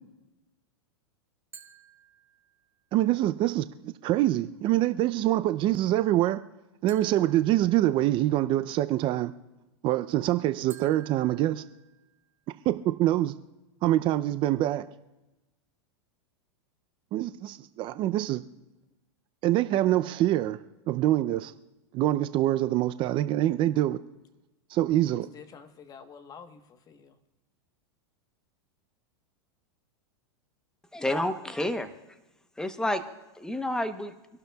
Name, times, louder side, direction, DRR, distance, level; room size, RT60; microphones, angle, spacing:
sound 1, 1.5-2.8 6.9-8.4 10.7-12.4, right 8 dB, 20° right, 2.6 m, -53 dB
voice 1, 2.9-6.4 6.8-9.3 9.8-11.6 12.7-13.3 13.8-14.9 17.1-18.4 19.4-20.6 20.9-21.5 21.9-24.0 24.7-25.3, right 14 dB, 35° right, 0.5 m, -25 dB
voice 2, 25.1-27.2, left 6 dB, 25° left, 1.1 m, -49 dB
voice 3, 30.9-31.9 32.6-33.0 33.4-34.1, left 1 dB, 5° left, 0.9 m, -29 dB
25.5 x 12.0 x 2.3 m
hypercardioid pair, 125°, 14 cm